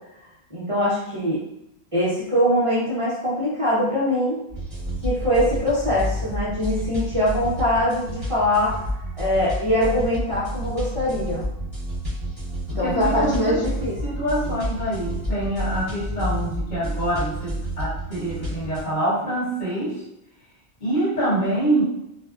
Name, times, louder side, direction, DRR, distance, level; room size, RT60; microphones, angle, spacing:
voice 1, 0.5-1.4 1.9-4.4 5.0-8.8 9.2-11.4 12.8-14.0, left 1 dB, 35° right, -9 dB, 0.7 m, -22 dB
sound 1, 4.5-18.8, equal, 5° right, 1.2 m, -30 dB
voice 2, 12.7-13.6 14.0-20.0 20.8-21.8, right 1 dB, 45° left, -8 dB, 1.2 m, -25 dB
2.5 x 2.2 x 2.3 m, 0.84 s
omnidirectional pair, 1.1 m